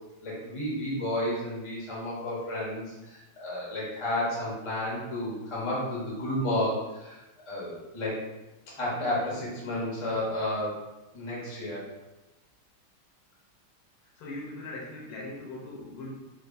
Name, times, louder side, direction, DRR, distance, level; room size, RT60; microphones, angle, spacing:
voice 1, 0.2-8.2 8.7-10.8 11.1-11.8, left 1 dB, 25° left, -6 dB, 0.6 m, -32 dB
voice 2, 14.0-16.1, left 2 dB, 75° left, -3 dB, 1.8 m, -40 dB
4.4 x 2.9 x 2.6 m, 1.0 s
omnidirectional pair, 2.4 m